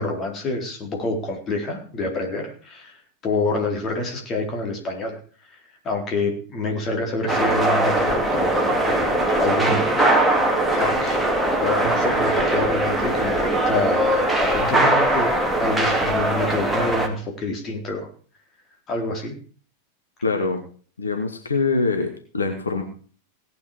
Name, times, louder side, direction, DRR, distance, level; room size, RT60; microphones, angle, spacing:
voice 1, 0.0-3.0 3.2-5.2 5.5-5.6 5.8-10.3 10.7-11.2 11.5-18.1 18.9-19.4, left 2 dB, 30° left, 2 dB, 4.1 m, -27 dB
sound 1, 7.3-17.1, right 1 dB, 5° right, 2.5 m, -21 dB
voice 2, 20.2-20.6 21.0-22.8, left 3 dB, 75° left, 4 dB, 1.9 m, -24 dB
17.5 x 9.2 x 5.1 m, 0.42 s
figure-of-eight pair, 90°, 0 cm